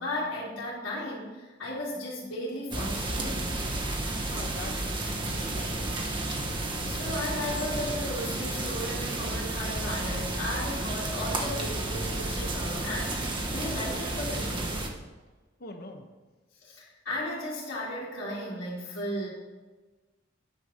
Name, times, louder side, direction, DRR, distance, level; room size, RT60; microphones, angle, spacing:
voice 1, 0.0-3.6 6.8-14.7 16.5-19.3, left 1 dB, 85° left, -10 dB, 2.8 m, -35 dB
sound 1, 2.7-14.9, right 2 dB, 25° right, 1.0 m, -32 dB
voice 2, 4.3-6.0 15.6-16.1, left 2 dB, 50° left, 4 dB, 1.2 m, -44 dB
9.9 x 5.5 x 6.5 m, 1.3 s
head